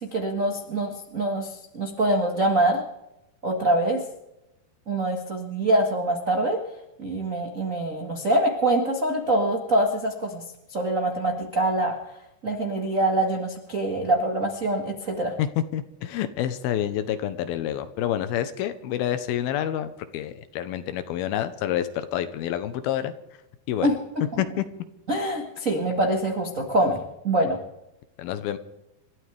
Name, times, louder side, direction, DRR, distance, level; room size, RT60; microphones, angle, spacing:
voice 1, 0.0-2.8 3.4-4.0 4.9-6.6 7.0-10.4 10.7-12.2 12.4-15.3 23.8-24.4 25.1-27.6, right 1 dB, 75° right, 2 dB, 0.7 m, -24 dB
voice 2, 15.4-23.1 23.7-23.9 24.4-24.6 28.2-28.6, left 11 dB, 80° left, 11 dB, 2.7 m, -28 dB
29.0 x 13.0 x 3.4 m, 0.91 s
omnidirectional pair, 4.6 m